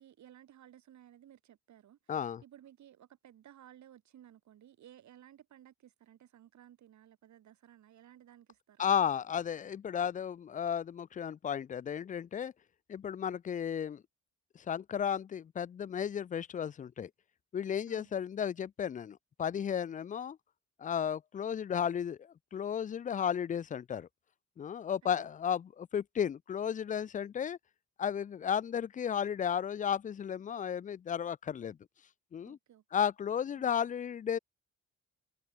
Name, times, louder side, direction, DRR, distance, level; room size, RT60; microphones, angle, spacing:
voice 1, 0.0-8.9 17.9-18.2 25.0-25.3 32.4-32.8 33.5-33.7, right 11 dB, 70° right, 5.0 m, -58 dB
voice 2, 2.1-2.4 8.8-12.5 12.9-14.0 14.6-17.1 17.5-20.4 20.8-24.1 24.6-27.6 28.0-31.8 32.3-32.6 32.9-34.4, left 8 dB, 25° left, 0.4 m, -34 dB
cardioid pair, 90°, 30 cm